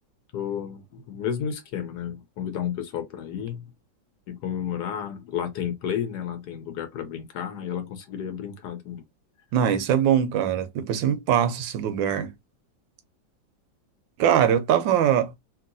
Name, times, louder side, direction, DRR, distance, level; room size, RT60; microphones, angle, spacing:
voice 1, 0.3-3.7 4.3-9.0, left 9 dB, 70° left, 1.1 m, -32 dB
voice 2, 9.5-12.3 14.2-15.4, right 9 dB, 85° right, 1.3 m, -22 dB
2.9 x 2.8 x 2.5 m
omnidirectional pair, 2.0 m